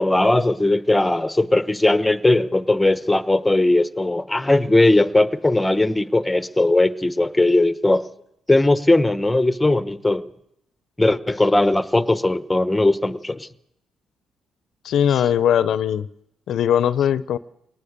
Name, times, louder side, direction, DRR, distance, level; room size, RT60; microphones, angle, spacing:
voice 1, 0.0-8.1 8.5-10.3 11.0-13.5, left 2 dB, 10° left, 1.1 m, -18 dB
voice 2, 14.8-16.1 16.5-17.4, left 9 dB, 70° left, 0.7 m, -19 dB
22.5 x 19.0 x 6.8 m
cardioid pair, 90°, 0 cm